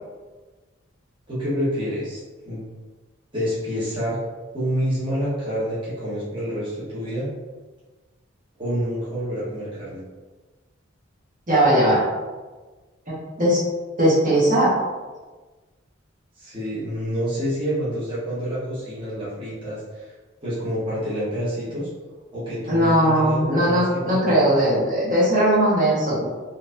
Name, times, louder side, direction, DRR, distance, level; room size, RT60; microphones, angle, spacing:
voice 1, 1.3-2.2 2.4-2.7 3.3-4.2 4.5-7.3 8.6-10.0 16.4-20.1 20.4-21.9 22.3-24.5, equal, 25° right, -10 dB, 1.3 m, -28 dB
voice 2, 11.5-12.0 13.1-13.6 14.0-14.7 22.7-26.2, right 1 dB, 40° right, -9 dB, 1.5 m, -19 dB
4.2 x 2.7 x 2.6 m, 1.3 s
head